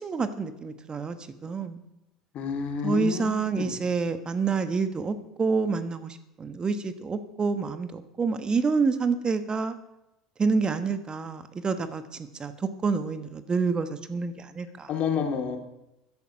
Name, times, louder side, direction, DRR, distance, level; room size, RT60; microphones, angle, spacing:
voice 1, 0.0-1.8 2.8-9.8 10.4-14.9, right 4 dB, 30° right, 10 dB, 1.3 m, -28 dB
voice 2, 2.3-3.7 14.9-15.6, left 6 dB, 50° left, 5 dB, 2.6 m, -29 dB
14.0 x 11.0 x 5.8 m, 0.91 s
hypercardioid pair, 75°, 3 cm